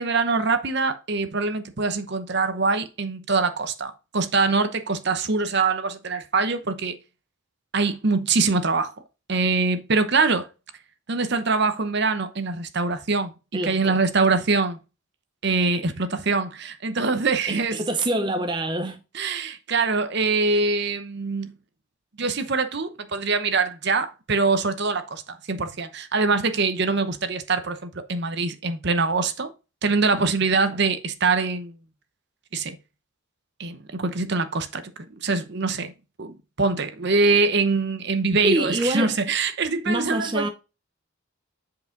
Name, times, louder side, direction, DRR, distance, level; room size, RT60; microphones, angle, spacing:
voice 1, 0.0-7.0 7.7-8.9 9.3-10.5 11.1-13.3 13.6-14.8 15.4-17.8 19.1-21.5 22.2-29.5 29.8-31.8 32.5-32.8 33.6-34.9 35.2-35.9 36.2-40.5, right 4 dB, 50° right, 0.9 m, -24 dB
voice 2, 13.5-14.0 17.5-19.0 38.4-39.1 39.9-40.5, right 1 dB, 20° right, 0.7 m, -25 dB
8.3 x 4.8 x 3.9 m
head